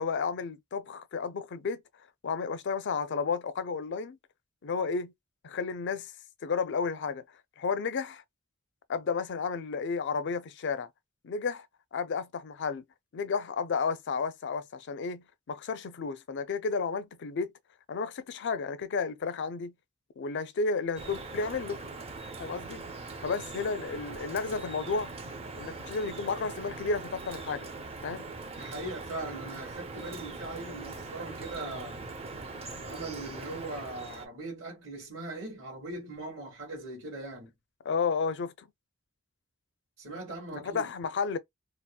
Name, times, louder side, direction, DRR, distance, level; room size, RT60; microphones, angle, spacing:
voice 1, 0.0-1.8 2.2-4.2 4.6-5.1 5.4-6.1 6.4-7.2 7.6-8.2 8.9-10.9 11.2-11.7 11.9-12.8 13.1-17.5 17.9-19.7 20.2-21.8 22.4-22.8 23.2-25.1 25.5-27.7 28.0-28.3 37.8-38.7 40.5-41.4, left 5 dB, 60° left, 0.5 m, -32 dB
Drip, 21.0-34.3, right 3 dB, 30° right, 0.6 m, -41 dB
voice 2, 28.6-32.0 32.8-37.5 40.0-40.9, right 2 dB, 65° right, 2.0 m, -40 dB
4.1 x 2.0 x 2.3 m
head